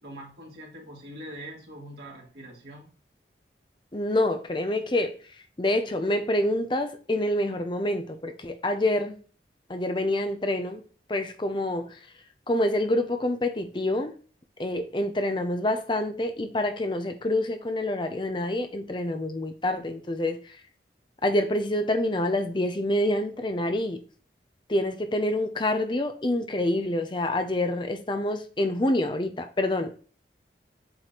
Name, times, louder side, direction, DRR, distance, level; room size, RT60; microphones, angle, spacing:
voice 1, 0.0-2.9, right 1 dB, 70° right, -2 dB, 2.4 m, -43 dB
voice 2, 3.9-5.1 5.6-9.2 9.7-10.8 11.1-12.0 12.5-14.1 14.6-20.4 21.2-24.0 24.7-30.0, left 1 dB, 25° left, 7 dB, 0.6 m, -27 dB
7.7 x 3.2 x 4.1 m, 0.40 s
head